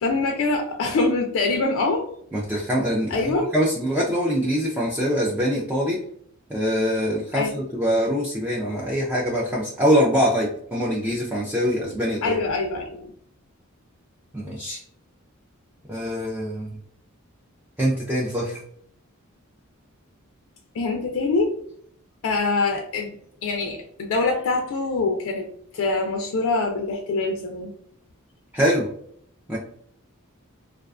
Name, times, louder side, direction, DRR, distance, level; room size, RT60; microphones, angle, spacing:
voice 1, 0.0-2.1 3.1-3.4 7.3-7.6 12.2-13.1 20.7-21.5 22.2-23.2 23.4-25.5 25.7-27.7, left 3 dB, 65° left, 2 dB, 0.4 m, -24 dB
voice 2, 2.3-6.0 6.5-12.4 14.3-14.8 15.9-16.7 17.8-18.6 28.5-28.9 29.5-29.6, equal, 10° right, -5 dB, 0.3 m, -23 dB
2.4 x 2.2 x 2.3 m, 0.65 s
head